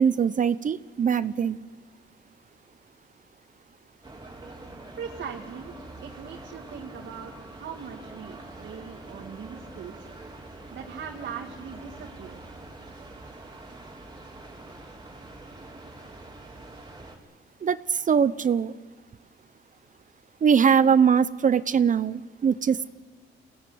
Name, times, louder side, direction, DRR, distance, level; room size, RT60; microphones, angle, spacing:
voice 1, 0.0-1.6 17.6-18.7 20.4-22.9, right 7 dB, 40° right, 16 dB, 0.7 m, -22 dB
sound 1, 4.0-17.2, right 2 dB, 20° right, 4.1 m, -44 dB
voice 2, 5.0-5.7 6.0-10.1 10.7-12.4, right 7 dB, 65° right, 1 dB, 2.1 m, -40 dB
24.0 x 17.5 x 9.6 m, 1.4 s
cardioid pair, 90°, 20 cm